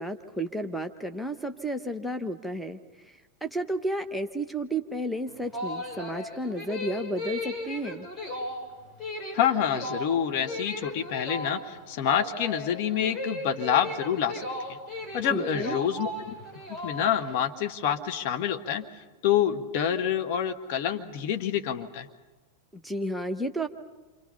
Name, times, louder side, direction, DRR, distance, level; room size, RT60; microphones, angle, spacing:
voice 1, 0.0-8.1 15.3-15.8 22.7-23.7, right 1 dB, ahead, 7 dB, 1.2 m, -32 dB
sound 1, 5.3-17.4, left 1 dB, 20° left, 7.0 m, -36 dB
voice 2, 9.3-14.8 15.1-16.4 16.8-18.8 19.2-22.1, left 9 dB, 45° left, 9 dB, 1.8 m, -27 dB
28.5 x 26.5 x 5.6 m, 1.2 s
figure-of-eight pair, 90°, 0 cm